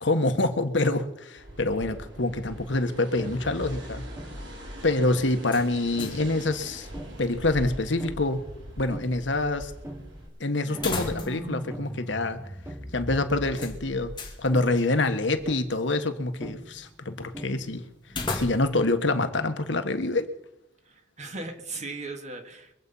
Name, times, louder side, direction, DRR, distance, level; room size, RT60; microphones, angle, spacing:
voice 1, 0.0-4.1 4.8-6.9 7.2-8.5 8.8-9.7 10.4-12.4 12.9-17.9 18.3-20.3, left 2 dB, 70° left, 1.4 m, -26 dB
sound 1, 1.3-10.3, right 1 dB, 75° right, 4.4 m, -42 dB
sound 2, 3.1-6.3 6.9-7.5 8.0-8.5 8.9-9.4 9.8-10.4 10.7-16.0 16.4-17.0 17.3-18.0, equal, 15° right, 2.0 m, -41 dB
sound 3, 5.4-6.3 6.6-6.7 10.7-11.6 11.9-12.0 13.6-14.4 18.1-18.9, left 3 dB, 25° left, 2.7 m, -34 dB
voice 2, 20.9-22.7, right 3 dB, 40° right, 2.1 m, -38 dB
24.0 x 8.2 x 5.6 m
head